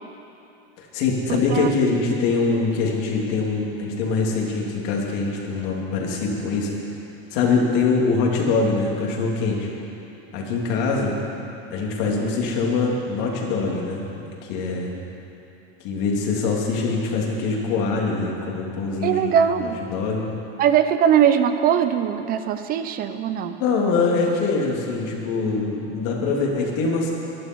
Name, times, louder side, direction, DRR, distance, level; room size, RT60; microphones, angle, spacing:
voice 1, 0.8-6.7 7.3-9.7 10.3-11.1 11.7-14.0 14.5-14.9 15.8-19.3 19.6-20.2 23.6-27.1, left 4 dB, 55° left, -2 dB, 3.2 m, -23 dB
voice 2, 1.3-1.7 19.0-19.8 20.6-23.6, right 9 dB, 30° right, 10 dB, 0.6 m, -20 dB
23.0 x 11.5 x 4.7 m, 2.9 s
supercardioid pair, 155°, 31 cm